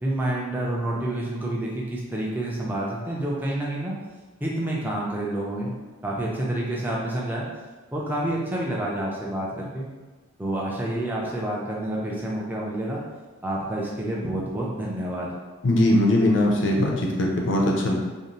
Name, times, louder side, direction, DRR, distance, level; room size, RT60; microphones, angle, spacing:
voice 1, 0.0-3.9 4.4-5.7 6.0-7.5 7.9-9.9 10.4-13.0 13.4-15.3, right 1 dB, 10° right, -4 dB, 0.4 m, -28 dB
voice 2, 15.6-18.0, left 1 dB, 65° left, -1 dB, 0.5 m, -20 dB
2.6 x 2.0 x 2.9 m, 1.3 s
head